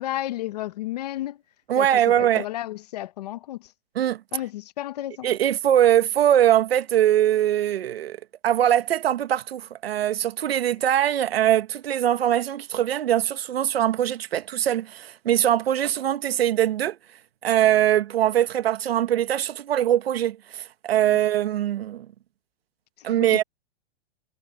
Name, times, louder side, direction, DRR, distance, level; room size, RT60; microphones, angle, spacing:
voice 1, 0.0-1.4 1.8-1.9 2.2-3.7 4.3-5.3 21.1-21.2 23.2-23.4, left 14 dB, 40° left, 0.9 m, -32 dB
voice 2, 1.7-2.4 4.0-4.2 5.2-8.2 8.4-17.0 17.4-22.1 23.0-23.4, right 11 dB, 65° right, 1.7 m, -22 dB
hypercardioid pair, 165°, 33 cm